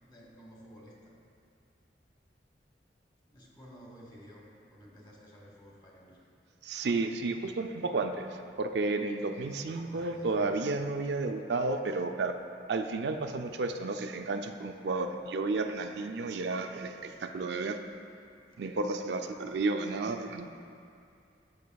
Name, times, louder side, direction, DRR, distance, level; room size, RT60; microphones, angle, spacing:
voice 1, 0.1-1.1 3.3-4.4 4.7-6.2 9.5-10.5, equal, 25° left, -3 dB, 1.3 m, -52 dB
voice 2, 6.6-12.3 12.7-17.8 18.6-20.5, right 3 dB, 80° right, 5 dB, 0.4 m, -32 dB
13.5 x 6.7 x 2.3 m, 2.5 s
head